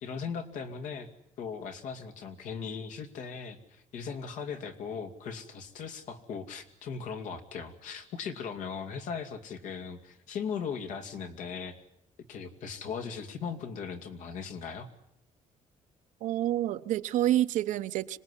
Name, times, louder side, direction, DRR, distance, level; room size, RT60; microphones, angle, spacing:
voice 1, 0.0-1.1 1.4-11.8 12.3-14.9, left 6 dB, 75° left, 2.6 m, -38 dB
voice 2, 16.2-18.2, right 13 dB, 75° right, 0.9 m, -28 dB
26.0 x 19.0 x 9.9 m
cardioid pair, 155°, 13 cm